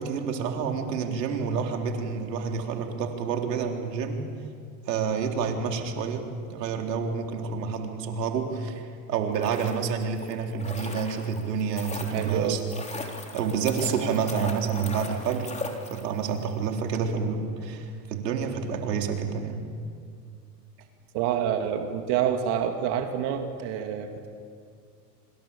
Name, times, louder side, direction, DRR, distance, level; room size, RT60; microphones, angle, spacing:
voice 1, 0.0-4.2 4.9-12.6 13.3-15.5 15.9-19.6, right 6 dB, 80° right, 3 dB, 4.0 m, -29 dB
sound 1, 9.2-16.4 16.6-16.7, left 3 dB, 15° left, 3.6 m, -39 dB
voice 2, 12.1-12.6 21.1-24.3, right 9 dB, 50° right, 5 dB, 2.7 m, -27 dB
26.5 x 26.0 x 7.2 m, 2.2 s
hypercardioid pair, 110°, 49 cm